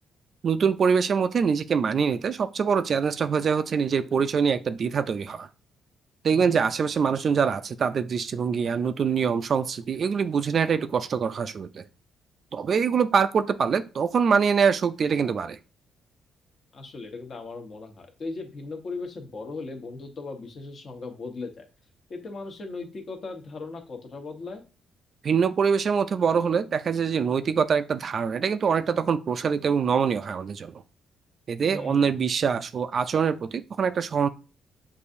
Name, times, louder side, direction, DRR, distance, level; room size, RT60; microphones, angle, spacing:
voice 1, 0.4-5.5 6.2-11.8 12.5-15.6 25.2-30.8 31.5-34.3, right 6 dB, 50° right, 0.3 m, -24 dB
voice 2, 16.7-21.6 22.1-24.6 31.7-32.1, left 3 dB, 50° left, 1.0 m, -38 dB
6.7 x 2.6 x 2.6 m
cardioid pair, 90°, 0 cm